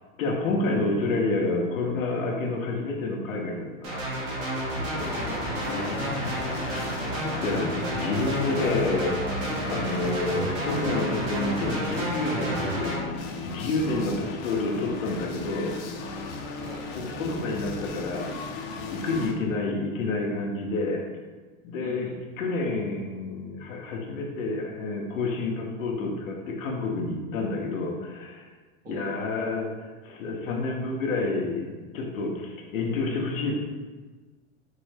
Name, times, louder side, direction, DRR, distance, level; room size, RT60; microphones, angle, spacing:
voice 1, 0.2-4.1 5.7-7.2 7.4-9.2 9.6-12.9 13.4-15.8 16.9-18.4 18.9-21.1 21.6-28.5 28.9-33.5, left 3 dB, 85° left, 1 dB, 0.8 m, -29 dB
sound 1, 3.8-13.0, right 1 dB, 70° right, 1.2 m, -31 dB
sound 2, 4.7-19.3, left 3 dB, 50° left, 0.6 m, -36 dB
voice 2, 4.8-5.7 13.9-14.2 16.6-16.9 21.8-22.2 28.8-29.2, right 2 dB, 25° right, -1 dB, 0.5 m, -41 dB
4.5 x 2.0 x 3.2 m, 1.3 s
hypercardioid pair, 115°, 39 cm